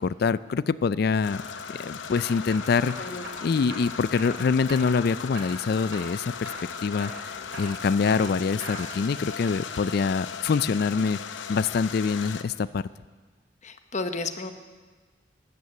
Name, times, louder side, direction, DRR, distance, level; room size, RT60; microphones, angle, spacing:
voice 1, 0.0-1.4 1.7-3.1 3.4-6.5 6.8-12.8, left 5 dB, 55° left, 17 dB, 0.4 m, -25 dB
sound 1, 1.2-12.4, left 6 dB, 80° left, 0.8 m, -38 dB
sound 2, 1.3-1.6 2.2-3.4 3.7-4.3 4.7-5.0 5.3-6.1 6.4-6.7 7.0-9.0 9.4-9.9, right 1 dB, 70° right, 3.5 m, -41 dB
voice 2, 8.2-8.5 13.6-14.5, left 3 dB, 40° left, 8 dB, 0.9 m, -34 dB
14.0 x 9.6 x 8.3 m, 1.4 s
head